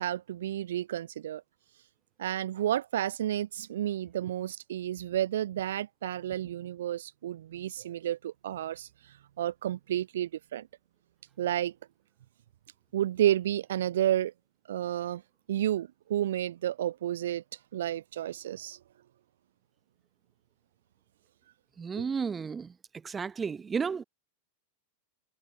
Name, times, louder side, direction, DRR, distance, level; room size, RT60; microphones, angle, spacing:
voice 1, 0.0-1.4 2.2-8.9 9.4-10.7 11.4-11.7 12.9-14.3 14.7-15.2 15.5-17.4 17.7-18.8 21.9-22.1, right 11 dB, 60° right, 1.2 m, -31 dB
voice 2, 21.8-22.7 23.0-24.0, right 5 dB, 15° right, 0.5 m, -32 dB
figure-of-eight pair, 90°, 0 cm